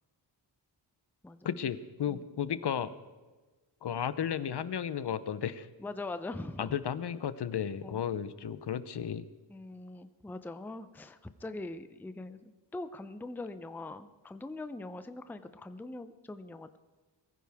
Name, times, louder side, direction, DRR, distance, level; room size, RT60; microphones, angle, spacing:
voice 1, 1.4-2.9 3.8-5.7 6.6-9.3, left 8 dB, 60° left, 14 dB, 0.7 m, -34 dB
voice 2, 5.8-6.8 7.8-8.0 9.5-16.8, left 2 dB, 5° left, 11 dB, 0.5 m, -42 dB
22.5 x 15.0 x 3.5 m, 1.3 s
wide cardioid pair, 160°, 45 cm